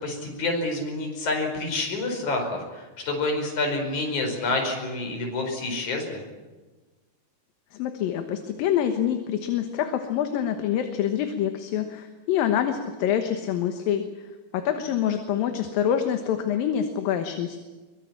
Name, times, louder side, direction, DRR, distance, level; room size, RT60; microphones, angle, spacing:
voice 1, 0.0-6.2, left 2 dB, 50° left, 3 dB, 6.1 m, -28 dB
voice 2, 7.7-14.0 14.5-17.6, left 9 dB, 70° left, 6 dB, 2.9 m, -26 dB
23.5 x 23.0 x 8.7 m, 1.3 s
omnidirectional pair, 4.3 m